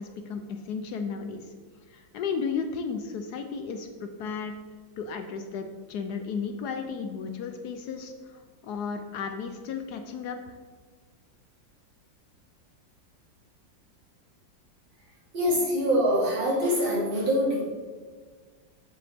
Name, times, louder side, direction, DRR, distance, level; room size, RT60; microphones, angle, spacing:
voice 1, 0.0-1.5 1.9-4.5 5.0-10.5, left 5 dB, 70° left, 7 dB, 1.0 m, -34 dB
voice 2, 15.3-17.6, equal, 90° right, -6 dB, 3.4 m, -24 dB
7.8 x 7.6 x 3.5 m, 1.5 s
omnidirectional pair, 2.1 m